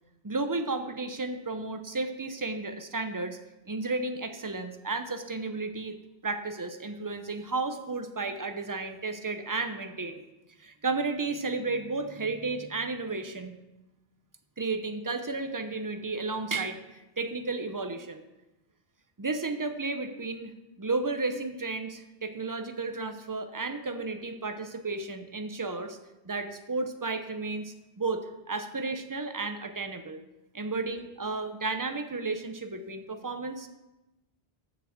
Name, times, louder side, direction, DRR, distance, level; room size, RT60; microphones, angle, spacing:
voice 1, 0.2-3.4 3.7-6.0 6.2-10.2 10.6-13.6 14.6-16.8 17.2-18.2 19.2-26.0 26.2-30.2 30.5-33.7, right 3 dB, 25° right, 8 dB, 0.6 m, -33 dB
7.2 x 6.8 x 7.2 m, 1.0 s
omnidirectional pair, 1.1 m